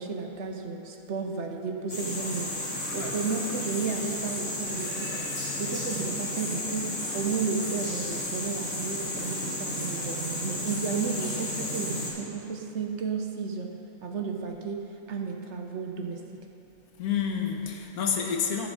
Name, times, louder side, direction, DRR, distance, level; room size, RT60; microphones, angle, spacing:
voice 1, 0.0-2.5 2.9-5.2 5.6-13.7 14.0-16.2, right 5 dB, 60° right, 2 dB, 0.9 m, -33 dB
sound 1, 1.9-12.1, left 1 dB, 50° left, 2.5 m, -33 dB
voice 2, 17.0-18.7, left 7 dB, 85° left, 3 dB, 1.4 m, -29 dB
14.0 x 6.2 x 4.0 m, 2.8 s
omnidirectional pair, 1.5 m